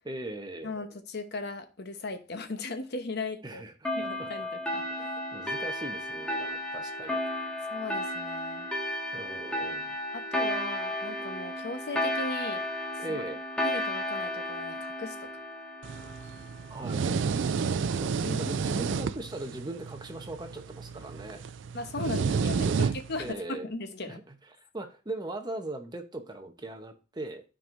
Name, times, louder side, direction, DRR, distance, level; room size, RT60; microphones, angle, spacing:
voice 1, 0.0-0.7 3.4-4.5 4.9-7.2 9.1-10.0 13.0-13.4 16.7-17.2 17.9-21.5 22.0-22.9 23.2-23.7 24.1-24.2 24.6-27.4, right 2 dB, 20° right, 6 dB, 0.9 m, -40 dB
voice 2, 0.6-3.6 3.9-4.9 7.7-8.7 10.1-12.6 13.1-13.2 13.6-15.4 18.2-18.5 21.7-24.2, left 3 dB, 55° left, 7 dB, 1.0 m, -37 dB
sound 1, 3.8-16.9, left 1 dB, 5° left, 1.7 m, -33 dB
sound 2, 15.8-23.3, right 5 dB, 65° right, 0.4 m, -31 dB
12.5 x 4.6 x 2.6 m, 0.34 s
head